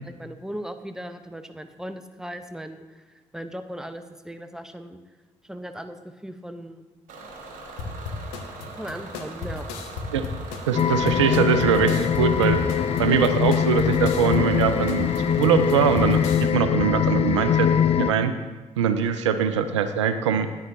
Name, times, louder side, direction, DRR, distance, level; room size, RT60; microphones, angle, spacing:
voice 1, 0.0-3.0 3.3-5.0 5.4-6.8 8.7-9.7, equal, 5° right, 9 dB, 0.8 m, -37 dB
Bus / Engine, 7.1-16.4, right 3 dB, 65° right, 1.5 m, -41 dB
sound 1, 7.8-16.5, left 4 dB, 80° left, 0.8 m, -35 dB
sound 2, 10.7-18.1, left 9 dB, 45° left, 0.4 m, -22 dB
voice 2, 10.7-12.6 13.0-15.1 15.4-17.7 18.0-18.3 18.8-20.5, right 7 dB, 85° right, 10 dB, 0.4 m, -22 dB
13.5 x 9.7 x 2.6 m, 1.2 s
hypercardioid pair, 40°, 15 cm